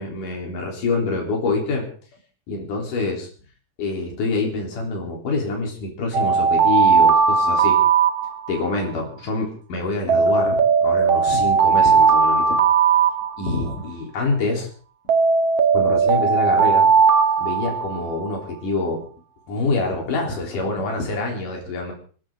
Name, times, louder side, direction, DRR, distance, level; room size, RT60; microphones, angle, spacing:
voice 1, 0.0-1.9 2.5-3.3 3.8-7.8 8.5-12.6 13.4-14.7 15.7-16.9 17.4-19.1 19.5-21.9, left 3 dB, 70° left, 0 dB, 5.3 m, -26 dB
Alarm, 6.1-8.7 10.1-13.7 15.1-18.3, right 6 dB, 55° right, 2.3 m, -17 dB
27.5 x 12.0 x 3.8 m, 0.41 s
omnidirectional pair, 3.8 m